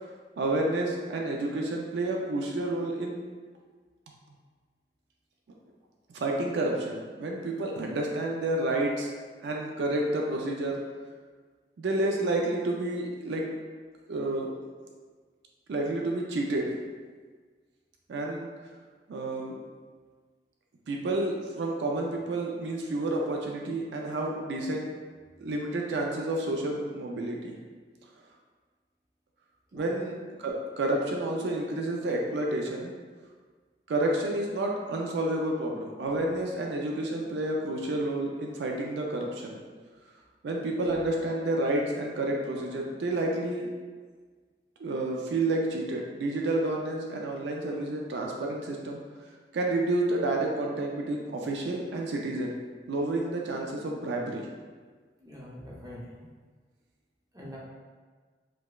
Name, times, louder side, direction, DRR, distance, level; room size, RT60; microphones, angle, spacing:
voice 1, 0.4-3.2 6.1-9.1 9.4-10.8 11.8-13.5 14.1-14.5 15.7-16.7 18.1-18.5 19.1-19.6 20.9-24.9 25.4-27.5 29.7-32.9 33.9-39.6 40.4-43.7 44.8-49.0 49.5-52.6 52.9-54.5, right 2 dB, 75° right, 0 dB, 0.4 m, -30 dB
voice 2, 55.2-56.3 57.3-57.6, equal, 20° right, -6 dB, 0.7 m, -44 dB
4.7 x 2.1 x 2.3 m, 1.5 s
head